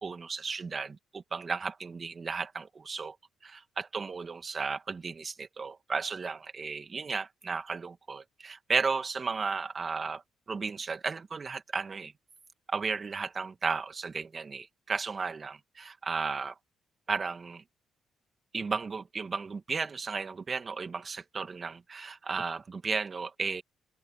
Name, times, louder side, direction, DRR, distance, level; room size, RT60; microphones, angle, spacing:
voice 1, 0.0-3.2 3.4-10.2 10.5-12.1 12.7-16.5 17.1-17.6 18.5-23.6, right 4 dB, 35° right, 2.2 m, -34 dB
cardioid pair, 90°, 0 cm